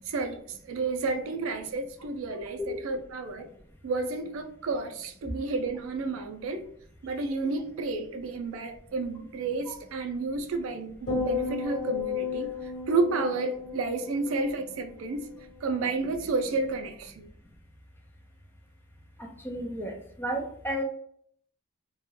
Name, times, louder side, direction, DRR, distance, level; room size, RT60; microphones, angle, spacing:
voice 1, 0.1-3.5 3.8-6.7 7.0-12.5 12.9-15.3 15.6-17.3, right 3 dB, 65° right, 0.4 m, -31 dB
sound 1, 11.1-15.5 15.8-16.2, left 6 dB, 55° left, 1.2 m, -34 dB
voice 2, 19.2-20.8, equal, 10° left, 0.4 m, -33 dB
2.2 x 2.1 x 3.0 m
head